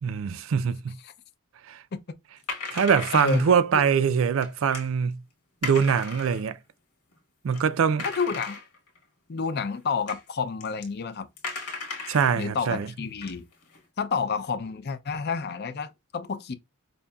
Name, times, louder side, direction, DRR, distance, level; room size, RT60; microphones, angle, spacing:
voice 1, 0.0-0.9 1.7-1.8 2.7-5.2 5.6-6.6 7.4-8.1 12.1-12.9, right 6 dB, 60° right, 0.4 m, -23 dB
sound 1, 2.4-3.6 4.4-4.9 5.6-6.5 7.1-7.2 7.5-7.6 8.0-9.0 9.7-9.8 10.1-10.2 10.6-10.9 11.4-12.4 12.8-12.9 13.2-13.8, left 4 dB, 90° left, 1.3 m, -36 dB
voice 2, 3.1-3.8 8.0-8.6 9.3-11.3 12.4-13.4 14.0-16.6, left 5 dB, 45° left, 0.4 m, -30 dB
5.2 x 2.7 x 2.3 m
head